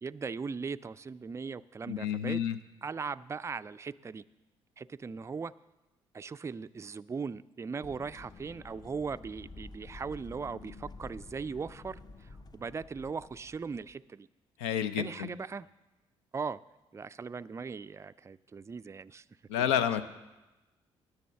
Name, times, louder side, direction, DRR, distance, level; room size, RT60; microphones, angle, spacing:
voice 1, 0.0-2.4 2.8-4.2 4.8-5.5 6.1-14.3 15.0-15.7 16.3-16.6 16.9-19.2 19.6-19.7, right 5 dB, 20° right, 14 dB, 0.3 m, -39 dB
voice 2, 1.9-2.6 14.6-15.3 19.5-20.0, left 9 dB, 80° left, 11 dB, 0.6 m, -29 dB
sound 1, 7.8-14.0, left 3 dB, 30° left, 0.7 m, -50 dB
10.5 x 6.9 x 7.3 m, 1.1 s
hypercardioid pair, 45°, 14 cm